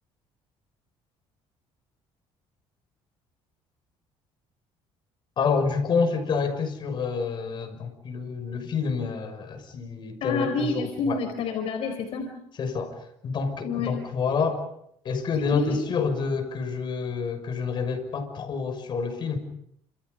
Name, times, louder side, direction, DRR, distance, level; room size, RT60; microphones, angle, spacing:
voice 1, 5.4-11.2 12.6-14.6 15.0-19.4, left 5 dB, 45° left, 6 dB, 6.3 m, -28 dB
voice 2, 10.2-12.3 13.6-13.9 15.5-15.8, left 3 dB, 60° left, 5 dB, 4.4 m, -28 dB
29.5 x 27.0 x 5.4 m, 0.73 s
cardioid pair, 135°, 11 cm